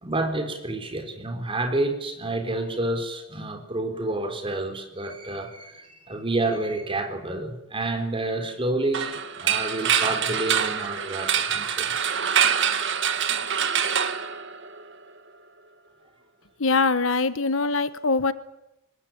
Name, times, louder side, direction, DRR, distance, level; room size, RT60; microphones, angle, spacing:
voice 1, 0.0-11.9, right 2 dB, 25° right, 5 dB, 3.9 m, -29 dB
sound 1, 8.9-14.9, right 8 dB, 60° right, 1.9 m, -25 dB
voice 2, 16.6-18.3, left 3 dB, 65° left, 14 dB, 1.1 m, -23 dB
24.0 x 20.5 x 9.1 m, 0.92 s
head